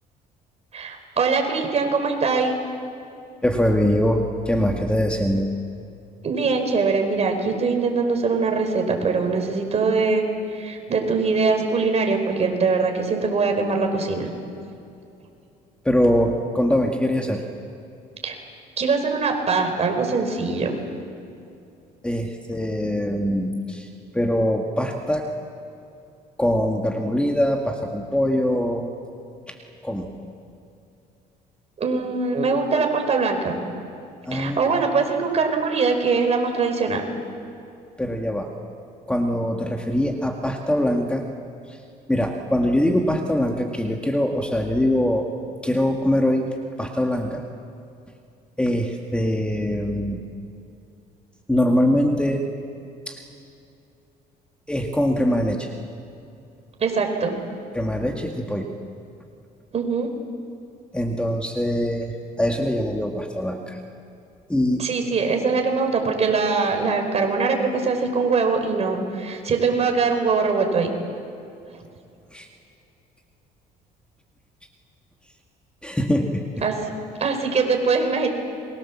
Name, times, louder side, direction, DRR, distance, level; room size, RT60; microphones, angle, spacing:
voice 1, 0.7-2.6 6.2-14.3 18.2-18.4 18.8-20.8 31.8-33.6 34.3-37.0 56.8-57.3 59.7-60.1 64.8-70.9 76.6-76.7 77.2-78.3, right 4 dB, 40° right, 4 dB, 4.8 m, -22 dB
voice 2, 3.4-5.5 15.8-17.4 22.0-25.3 26.4-28.9 29.5-29.6 29.8-30.1 34.3-34.8 38.0-38.5 39.1-41.2 41.7-41.8 42.1-45.3 45.6-46.5 46.8-47.4 48.6-50.2 51.5-52.4 53.1-53.2 54.7-55.7 57.7-58.7 60.9-63.8 64.5-64.9 72.3-72.5 75.8-76.4, equal, 5° left, 2 dB, 2.0 m, -23 dB
30.0 x 23.0 x 7.4 m, 2.6 s
cardioid pair, 110°, 17 cm